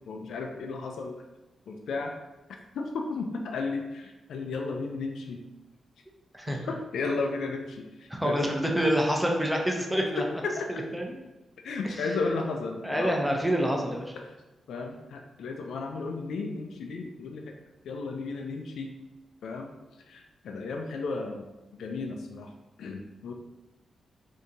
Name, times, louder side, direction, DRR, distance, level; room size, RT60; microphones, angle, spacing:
voice 1, 0.1-1.1 1.7-2.1 2.7-5.4 6.5-8.7 10.2-10.7 11.6-13.2 14.1-14.3 14.7-17.5 17.8-18.9 19.4-19.7 20.1-21.5 21.8-22.5 22.8-23.3, left 3 dB, 85° left, 3 dB, 0.4 m, -34 dB
voice 2, 6.3-6.7 8.1-10.2 10.7-11.1 12.0-12.1 12.8-14.1, equal, 5° right, 0 dB, 0.5 m, -27 dB
3.6 x 2.7 x 3.9 m, 1.1 s
wide cardioid pair, 175°, 0 cm